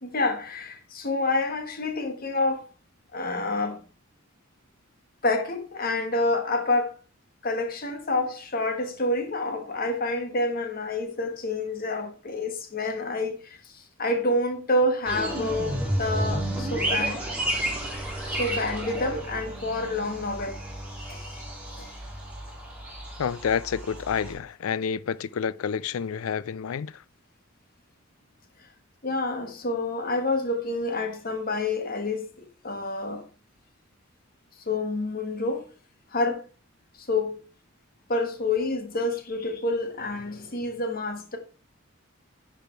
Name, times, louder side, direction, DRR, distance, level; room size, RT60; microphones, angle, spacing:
voice 1, 0.0-2.6 3.1-3.8 5.2-7.0 7.4-17.3 17.9-20.7 21.1-21.4 21.8-21.9 29.0-33.3 34.7-35.7 36.1-36.4 37.0-37.4 38.1-41.4, left 2 dB, 45° left, 1.5 m, -28 dB
sound 1, 15.1-24.3, right 1 dB, 5° right, 3.5 m, -32 dB
voice 2, 23.2-27.0, left 7 dB, 90° left, 0.4 m, -29 dB
10.0 x 5.0 x 4.5 m
head